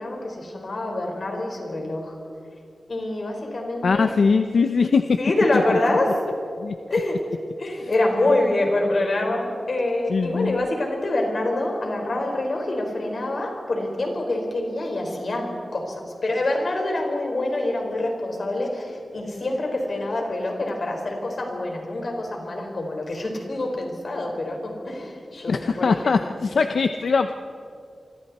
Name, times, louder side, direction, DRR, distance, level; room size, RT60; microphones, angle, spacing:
voice 1, 0.0-2.2 2.9-4.1 5.2-6.2 6.9-7.2 7.6-25.9, left 2 dB, 50° left, 1 dB, 4.7 m, -26 dB
voice 2, 3.8-5.2 6.6-6.7 10.1-10.7 25.5-27.3, left 5 dB, 80° left, 7 dB, 0.7 m, -21 dB
28.0 x 25.0 x 4.3 m, 2.5 s
wide cardioid pair, 130°, 0 cm